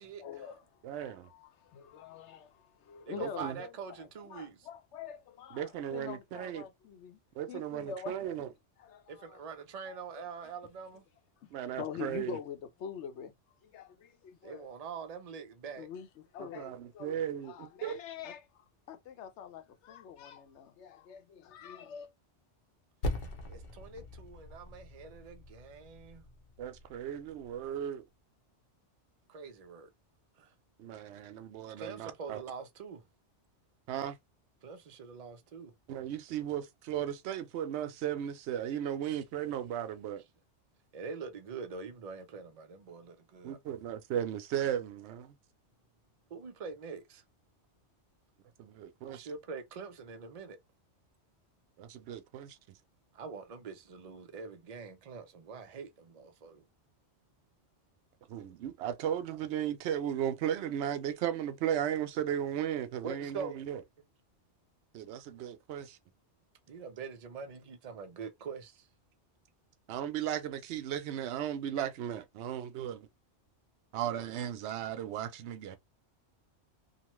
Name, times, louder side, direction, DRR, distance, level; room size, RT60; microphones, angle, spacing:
voice 1, 0.2-0.6 1.0-7.2 7.5-8.4 8.8-9.4 9.9-10.2 11.8-13.3 13.7-14.7 15.8-16.1 16.3-17.2 17.4-22.1, left 7 dB, 75° left, 0.9 m, -45 dB
voice 2, 0.8-1.3 3.2-3.6 5.5-6.6 7.4-8.5 11.5-12.4 16.4-18.0 26.6-28.0 30.8-32.4 33.9-34.2 35.9-40.2 43.4-45.3 48.6-49.3 51.8-52.6 58.3-63.8 64.9-66.0 69.9-73.1 73.9-75.8, right 10 dB, 70° right, 0.8 m, -36 dB
voice 3, 3.1-4.7 9.1-11.0 14.4-15.9 23.5-26.3 29.3-29.9 30.4-30.5 31.8-33.0 34.6-35.7 39.0-39.2 40.9-43.6 46.3-47.2 49.1-50.6 53.1-56.6 63.0-63.6 66.7-68.9, right 5 dB, 45° right, 0.5 m, -44 dB
Percussion, 23.0-27.9, left 1 dB, 50° left, 0.7 m, -42 dB
2.8 x 2.1 x 3.0 m
omnidirectional pair, 1.2 m